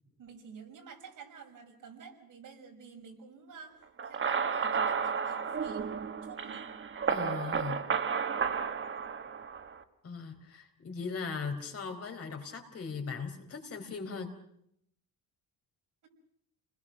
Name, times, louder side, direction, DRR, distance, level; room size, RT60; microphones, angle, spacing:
voice 1, 0.2-3.8 4.0-6.7 16.0-16.1, right 6 dB, 55° right, 2 dB, 6.0 m, -50 dB
sound 1, 4.0-9.8, right 6 dB, 35° right, 1.5 m, -32 dB
voice 2, 7.1-7.8 10.0-14.3, left 5 dB, 40° left, 5 dB, 4.5 m, -39 dB
29.5 x 21.0 x 6.3 m, 0.71 s
cardioid pair, 165°, 36 cm